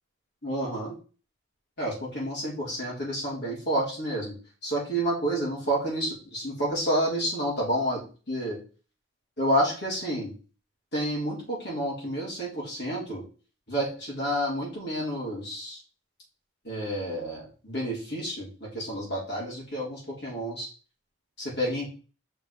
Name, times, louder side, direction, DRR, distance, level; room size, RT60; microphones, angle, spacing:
voice 1, 0.4-0.9 1.8-4.3 4.6-8.6 9.4-10.3 10.9-13.2 13.7-15.8 16.6-20.7 21.4-21.9, right 1 dB, 60° left, -5 dB, 4.0 m, -29 dB
5.9 x 5.2 x 4.4 m, 0.36 s
head